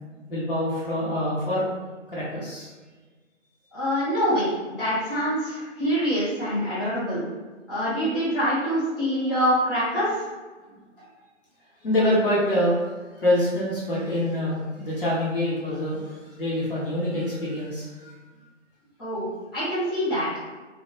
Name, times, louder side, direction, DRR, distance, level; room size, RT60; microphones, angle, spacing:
voice 1, 0.3-1.6 2.1-2.7 9.0-9.3 9.5-9.6 11.8-12.7 13.2-18.1, left 1 dB, 45° left, -7 dB, 0.9 m, -25 dB
voice 2, 3.7-7.2 7.7-10.1 19.0-19.3 19.5-20.3, equal, 20° left, -13 dB, 0.8 m, -25 dB
2.1 x 2.0 x 2.9 m, 1.3 s
figure-of-eight pair, 155°, 38 cm